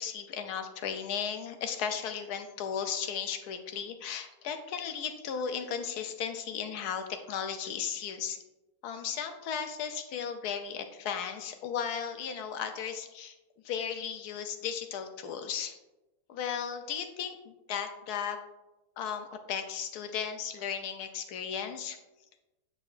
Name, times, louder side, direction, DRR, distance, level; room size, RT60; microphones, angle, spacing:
voice 1, 0.0-8.4 8.8-13.3 13.6-15.8 16.3-18.4 19.0-22.0, left 7 dB, 75° left, 7 dB, 0.9 m, -35 dB
8.4 x 4.9 x 2.4 m, 1.0 s
omnidirectional pair, 2.0 m